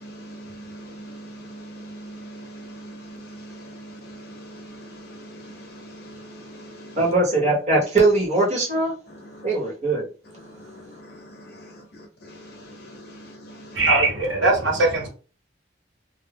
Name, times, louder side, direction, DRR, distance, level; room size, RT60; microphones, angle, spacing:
voice 1, 0.0-7.0 10.5-10.8 11.1-11.6 12.3-13.8, right 1 dB, 55° left, 0.7 m, -41 dB
voice 2, 7.0-8.9 9.4-10.1, right 2 dB, 40° right, 1.0 m, -20 dB
voice 3, 13.8-15.1, right 2 dB, 85° right, 0.9 m, -20 dB
2.3 x 2.1 x 3.4 m
head